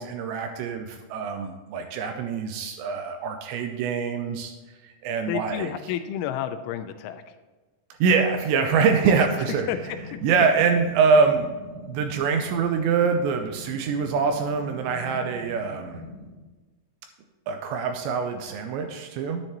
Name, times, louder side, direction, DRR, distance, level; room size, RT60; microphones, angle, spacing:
voice 1, 0.0-4.5 4.8-5.7 8.0-9.7 10.2-11.5 11.9-16.0 17.5-19.4, right 5 dB, 85° right, 6 dB, 2.6 m, -24 dB
voice 2, 5.3-7.2 9.1-9.2 9.7-9.8, left 10 dB, 85° left, 9 dB, 3.0 m, -30 dB
sound 1, 8.7-16.3, left 1 dB, 40° right, 3.8 m, -42 dB
10.5 x 9.8 x 3.0 m, 1.2 s
omnidirectional pair, 5.5 m